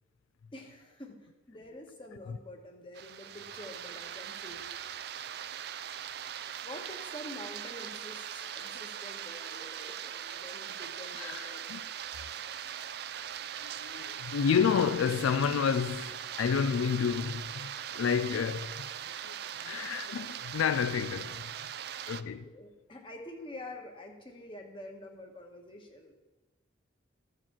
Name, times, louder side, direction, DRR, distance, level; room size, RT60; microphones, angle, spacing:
voice 1, 0.5-4.6 6.6-11.7 22.1-26.1, left 1 dB, 25° left, 1.3 m, -47 dB
sound 1, 3.0-22.2, right 9 dB, 50° right, 0.3 m, -40 dB
voice 2, 11.1-11.8 13.6-18.9 19.2-21.5 22.1-22.5, left 7 dB, 90° left, 0.4 m, -30 dB
14.0 x 4.9 x 7.2 m
head